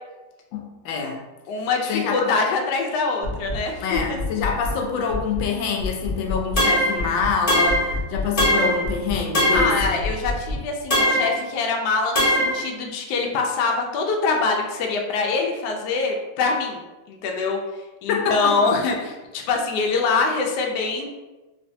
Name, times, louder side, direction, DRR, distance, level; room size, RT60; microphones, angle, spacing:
voice 1, 0.5-1.2 1.9-2.3 3.8-9.9 18.1-18.7, left 5 dB, 90° left, 2 dB, 1.3 m, -26 dB
voice 2, 1.5-4.2 9.5-16.8 17.1-17.6 18.0-21.1, left 4 dB, 70° left, 1 dB, 1.1 m, -24 dB
sound 1, 3.2-3.6 3.9-4.8 5.1-5.5 5.8-6.7 7.0-7.4 7.7-8.5 8.8-9.2 9.5-10.6, left 3 dB, 80° right, 0.4 m, -28 dB
sound 2, 6.6-7.0 7.5-7.9 8.4-8.8 9.3-9.8 10.9-11.4 12.2-12.6, equal, 50° left, 0.4 m, -20 dB
3.2 x 3.1 x 2.6 m, 1.1 s
omnidirectional pair, 2.0 m